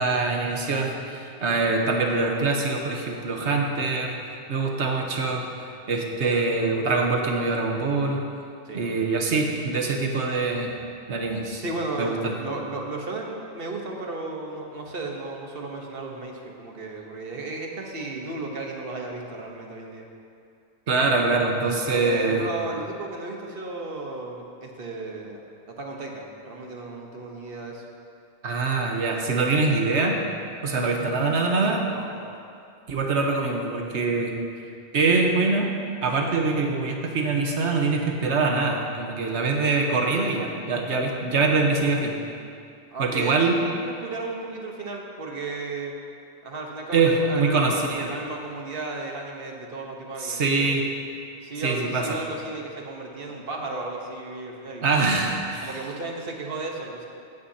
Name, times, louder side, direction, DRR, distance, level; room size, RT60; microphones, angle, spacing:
voice 1, 0.0-4.2 4.5-5.4 5.9-8.2 8.7-10.8 11.1-11.6 12.0-12.3 20.9-22.5 28.4-30.2 30.6-31.8 32.9-34.4 34.9-35.7 36.0-42.2 43.0-43.6 46.9-48.1 50.2-50.8 51.6-52.2 54.8-55.7, right 3 dB, 80° right, 1 dB, 1.4 m, -24 dB
voice 2, 8.6-9.0 11.6-20.0 21.9-25.4 25.7-27.9 30.7-31.0 31.8-32.3 42.9-45.9 46.4-50.8 51.4-55.1 55.6-57.1, right 3 dB, 55° right, 0 dB, 1.3 m, -34 dB
16.0 x 9.3 x 2.8 m, 2.5 s
omnidirectional pair, 1.1 m